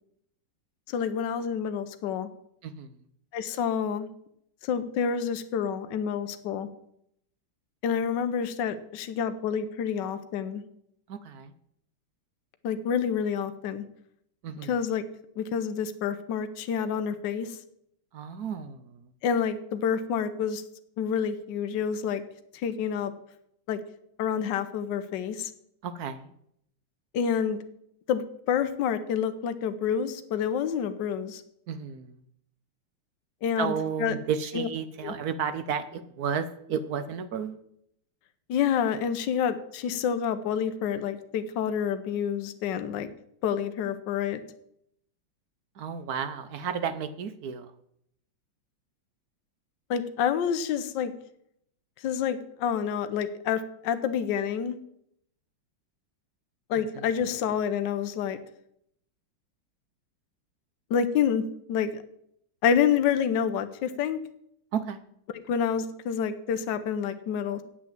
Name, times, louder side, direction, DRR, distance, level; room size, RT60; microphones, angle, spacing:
voice 1, 0.9-2.3 3.3-4.1 4.7-6.7 7.8-10.6 12.6-13.8 14.7-15.0 15.4-17.5 19.2-20.6 21.0-22.2 22.6-23.1 23.7-23.8 24.2-25.5 27.1-27.6 28.1-28.2 28.5-31.4 33.4-33.7 34.0-34.2 34.5-34.7 35.0-35.1 38.5-43.1 43.4-44.4 49.9-51.1 52.0-54.8 56.7-58.4 60.9-61.4 61.7-61.9 62.6-64.2 65.5-67.6, left 7 dB, 65° left, 10 dB, 1.4 m, -28 dB
voice 2, 2.6-3.0 11.1-11.5 14.4-14.8 18.1-19.1 25.8-26.3 31.7-32.2 33.6-37.6 45.8-47.7 56.9-57.1 64.7-65.0, right 7 dB, 60° right, 12 dB, 1.1 m, -32 dB
8.7 x 8.4 x 7.3 m, 0.72 s
omnidirectional pair, 2.2 m